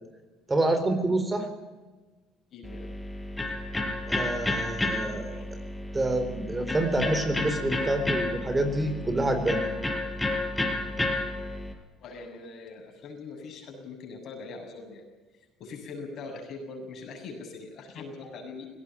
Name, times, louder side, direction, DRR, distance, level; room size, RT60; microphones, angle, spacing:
voice 1, 0.5-1.5 4.1-5.6 5.9-9.6, right 2 dB, 20° right, 8 dB, 4.0 m, -27 dB
voice 2, 2.5-2.9 5.3-5.4 12.0-15.0 15.6-18.7, left 4 dB, 55° left, 3 dB, 7.2 m, -42 dB
Electric guitar, 2.6-11.7, left 2 dB, 10° left, 5.4 m, -31 dB
19.0 x 17.0 x 9.2 m, 1.2 s
hypercardioid pair, 70°, 0 cm